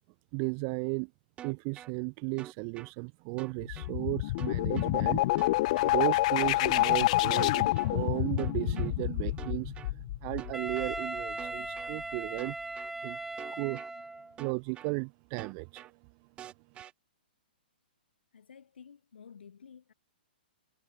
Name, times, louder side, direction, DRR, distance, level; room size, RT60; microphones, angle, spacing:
voice 1, 0.3-1.1 1.4-5.6 5.8-12.6 13.0-13.2 13.5-16.3 16.7-16.8, right 40 dB or more, 35° right, 1.9 m, -35 dB
sound 1, 1.4-1.9 2.4-2.9 3.4-3.9 4.4-4.9 5.4-5.9 6.4-6.9 7.4-7.9 8.4-8.9 9.4-9.9 10.4-10.9 11.4-11.9 12.4-12.9 13.4-13.9 14.4-14.9 15.4-15.9 16.4-16.9, right 11 dB, 20° right, 2.7 m, -46 dB
sound 2, 3.6-11.2, left 18 dB, 45° left, 0.5 m, -28 dB
Wind instrument woodwind instrument, 10.5-14.4, right 2 dB, 5° right, 1.3 m, -38 dB
voice 2, 18.3-19.9, left 7 dB, 85° left, 6.4 m, -52 dB
hypercardioid pair, 145°, 5 cm